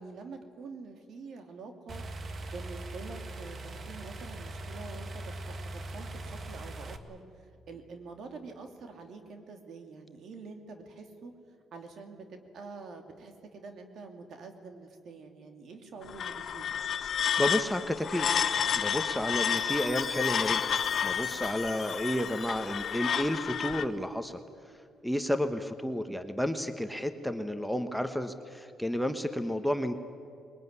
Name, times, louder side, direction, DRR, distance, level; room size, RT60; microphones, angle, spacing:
voice 1, 0.0-2.0 2.5-11.3 11.7-16.7, right 4 dB, 65° right, 5 dB, 2.8 m, -46 dB
sound 1, 1.9-7.0, right 2 dB, 45° right, 1.5 m, -41 dB
sound 2, 16.0-23.9, left 8 dB, 60° left, 0.8 m, -30 dB
voice 2, 17.4-18.3 18.8-20.6 21.0-24.4 25.0-29.9, equal, ahead, 7 dB, 1.3 m, -31 dB
Chime, 19.4-23.6, left 4 dB, 35° left, 3.8 m, -44 dB
21.5 x 20.5 x 9.7 m, 2.5 s
cardioid pair, 90°, 0 cm